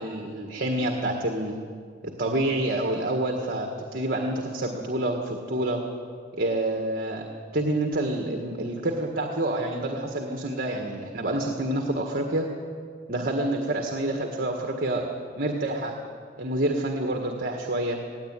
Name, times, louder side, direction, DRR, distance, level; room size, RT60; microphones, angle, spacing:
voice 1, 0.0-1.5 2.2-5.8 6.4-7.3 7.5-12.5 13.1-15.1 15.4-16.0 16.4-18.0, right 1 dB, 50° right, 2 dB, 1.8 m, -27 dB
17.5 x 17.0 x 9.6 m, 2.2 s
head